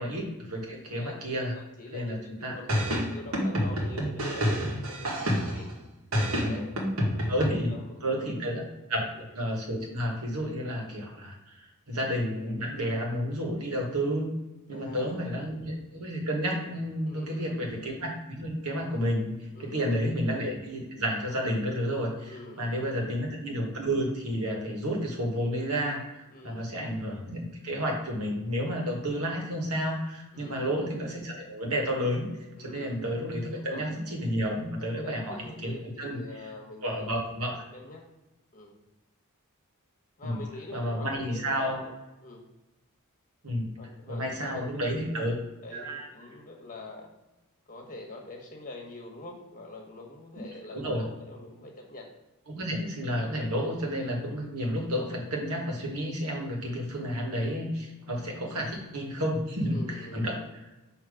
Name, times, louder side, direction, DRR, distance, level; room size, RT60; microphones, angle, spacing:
voice 1, 0.0-1.5 1.9-2.5 6.3-6.6 7.3-7.7 8.0-8.6 8.9-14.3 14.7-19.3 19.6-32.3 32.6-36.2 36.8-37.6 40.2-40.4 40.7-41.8 43.4-43.7 44.1-45.3 45.7-46.1 50.7-51.0 52.5-60.4, equal, 85° right, 0 dB, 1.6 m, -31 dB
voice 2, 0.9-1.5 1.8-4.8 5.4-5.7 6.4-6.7 7.1-8.5 9.0-9.2 14.7-15.2 17.0-17.6 19.5-20.0 22.2-22.8 26.3-26.7 30.3-30.7 32.6-33.1 33.5-33.9 34.5-37.1 37.4-38.0 38.5-38.8 40.2-41.9 42.2-42.5 43.8-47.1 47.7-52.1 59.7-60.3, left 2 dB, 40° left, 1 dB, 1.3 m, -45 dB
sound 1, 2.7-5.7 6.1-7.5, equal, 70° right, 1.6 m, -28 dB
6.4 x 3.1 x 4.9 m, 1.0 s
head